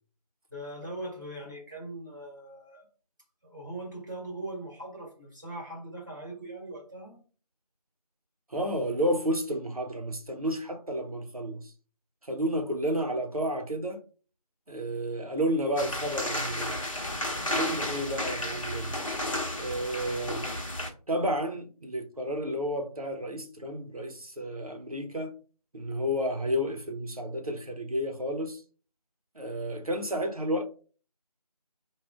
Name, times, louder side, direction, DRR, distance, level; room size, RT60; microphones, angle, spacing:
voice 1, 0.5-2.9 3.4-7.2, right 1 dB, 30° right, 1.2 m, -40 dB
voice 2, 8.5-11.7 12.2-14.0 14.7-16.8 17.5-19.0 19.5-20.5 21.1-25.3 25.7-28.6 29.3-30.6, equal, 60° right, 0.9 m, -31 dB
sound 1, 15.8-20.9, left 1 dB, 50° left, 0.9 m, -32 dB
4.8 x 2.4 x 3.5 m
figure-of-eight pair, 170°, 21 cm